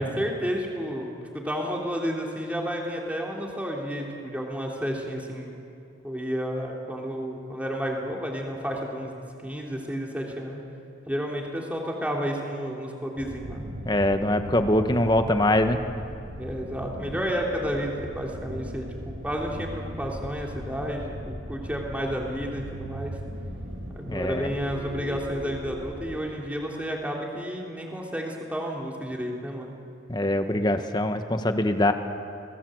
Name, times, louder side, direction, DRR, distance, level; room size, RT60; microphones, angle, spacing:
voice 1, 0.0-5.5 6.0-10.6 11.1-13.7 16.3-23.2 23.9-29.7, equal, 5° right, -1 dB, 3.2 m, -31 dB
sound 1, 13.2-26.2, right 1 dB, 80° right, 2.7 m, -38 dB
voice 2, 13.9-15.8 24.1-24.5 30.1-31.9, left 1 dB, 20° left, 7 dB, 1.2 m, -23 dB
27.5 x 19.5 x 7.9 m, 2.6 s
head